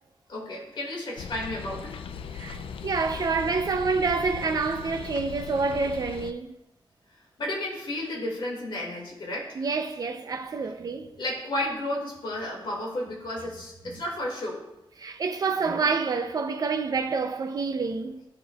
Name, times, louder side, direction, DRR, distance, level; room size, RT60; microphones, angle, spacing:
voice 1, 0.3-2.0 7.4-9.7 11.2-14.6, left 1 dB, 65° left, 2.3 m, -32 dB
sound 1, 1.2-6.3, left 7 dB, 85° left, 0.4 m, -39 dB
voice 2, 2.3-6.5 9.6-11.1 13.9-14.0 15.0-18.2, right 4 dB, 45° right, 0.6 m, -28 dB
13.5 x 4.5 x 2.4 m
wide cardioid pair, 170°, 9 cm